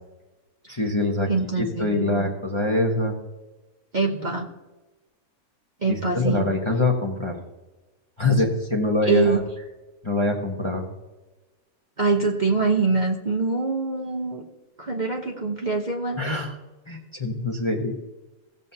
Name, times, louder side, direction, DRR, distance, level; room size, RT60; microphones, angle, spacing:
voice 1, 0.7-1.3 1.6-3.2 5.9-7.4 8.2-9.4 10.0-10.9 16.2-16.5 16.9-18.0, left 2 dB, 20° left, 0 dB, 1.0 m, -24 dB
voice 2, 1.3-2.2 3.9-4.5 5.8-6.4 9.0-9.4 12.0-14.4 14.8-16.2, right 3 dB, 35° right, -1 dB, 1.0 m, -24 dB
17.0 x 7.3 x 2.8 m, 1.1 s
omnidirectional pair, 1.6 m